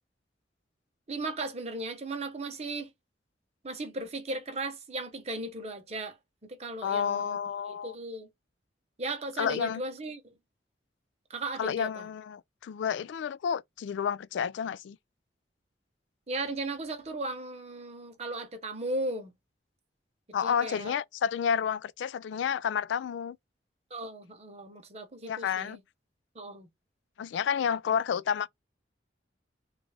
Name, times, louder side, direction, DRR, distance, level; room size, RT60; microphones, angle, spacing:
voice 1, 1.1-2.9 3.6-6.2 6.4-7.4 7.7-8.3 9.0-10.3 11.3-12.1 16.3-19.3 20.4-20.9 23.9-25.8 26.3-26.7, right 2 dB, 35° right, 0.9 m, -36 dB
voice 2, 6.8-8.0 9.4-9.8 11.6-15.0 20.3-23.4 25.2-25.8 27.2-28.5, left 7 dB, 85° left, 0.3 m, -30 dB
3.6 x 2.5 x 3.2 m
head